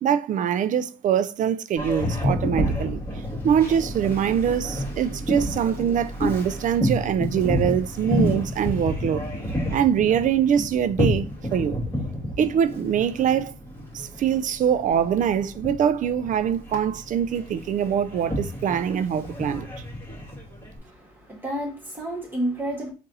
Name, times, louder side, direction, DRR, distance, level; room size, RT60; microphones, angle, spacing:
voice 1, 0.0-3.0 3.4-9.2 9.7-11.8 12.4-13.5 13.9-19.7, right 8 dB, 50° right, 0.4 m, -23 dB
Boat Water vehicle, 1.8-20.8, equal, 15° left, 2.0 m, -30 dB
voice 2, 20.8-22.9, right 1 dB, 10° right, 1.8 m, -30 dB
4.0 x 2.5 x 4.0 m
cardioid pair, 110°, 17 cm